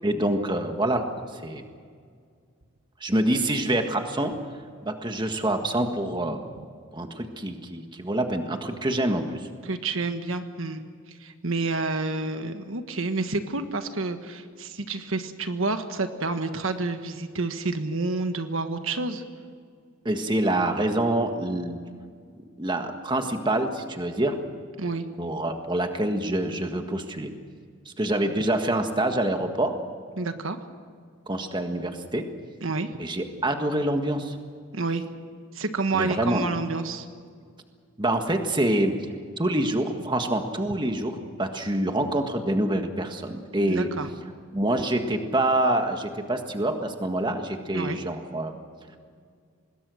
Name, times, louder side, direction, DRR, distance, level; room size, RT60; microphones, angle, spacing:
voice 1, 0.0-1.0 1.3-1.6 3.0-4.3 4.8-6.5 6.9-9.5 20.1-21.8 22.6-24.4 25.2-27.3 27.9-29.8 31.3-32.2 33.0-34.4 35.9-36.4 38.0-38.9 39.4-43.9 44.5-48.5, right 1 dB, 20° right, 5 dB, 1.6 m, -26 dB
voice 2, 9.6-19.2 24.8-25.1 30.2-30.6 32.6-33.0 34.7-35.0 35.5-37.1 43.7-44.1 47.7-48.0, right 3 dB, 70° right, 8 dB, 1.4 m, -29 dB
25.5 x 20.5 x 6.4 m, 2.1 s
head